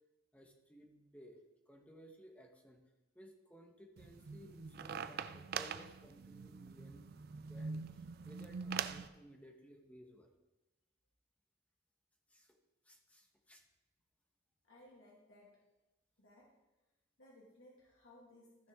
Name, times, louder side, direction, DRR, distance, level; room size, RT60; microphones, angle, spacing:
voice 1, 0.3-1.4 1.7-2.8 3.1-7.1 7.4-10.3 12.3-12.6 12.8-13.6, equal, 5° left, 2 dB, 1.1 m, -58 dB
sound 1, 4.0-9.1, right 6 dB, 50° right, 0.4 m, -44 dB
voice 2, 14.6-15.6 16.2-16.5 17.2-18.7, left 1 dB, 80° left, -5 dB, 2.1 m, -61 dB
15.0 x 6.1 x 3.6 m, 1.0 s
head